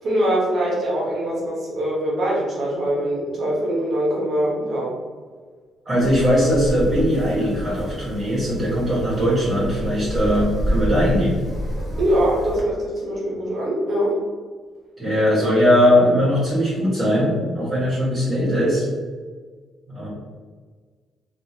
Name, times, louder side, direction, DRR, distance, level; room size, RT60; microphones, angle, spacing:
voice 1, 0.0-4.9 12.0-14.2 15.3-15.5, right 1 dB, 55° right, -4 dB, 0.9 m, -23 dB
voice 2, 5.8-11.4 15.0-18.9 19.9-20.1, equal, 40° right, -11 dB, 1.4 m, -20 dB
Wind, 6.0-12.6, equal, 15° right, 1.3 m, -29 dB
2.9 x 2.4 x 2.8 m, 1.5 s
cardioid pair, 90°, 0 cm